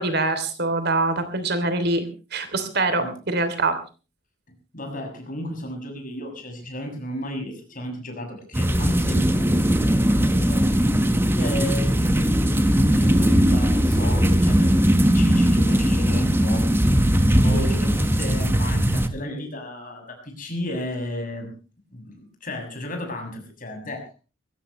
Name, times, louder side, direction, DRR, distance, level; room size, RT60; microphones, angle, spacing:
voice 1, 0.0-2.0 2.3-3.7 17.5-17.8, right 2 dB, 55° right, 10 dB, 3.0 m, -24 dB
voice 2, 4.7-10.7 11.4-16.7 17.4-21.5 21.9-24.1, left 1 dB, 45° left, 4 dB, 7.0 m, -34 dB
sound 1, 8.5-19.1, equal, 10° right, 1.4 m, -19 dB
22.0 x 16.5 x 3.2 m, 0.34 s
head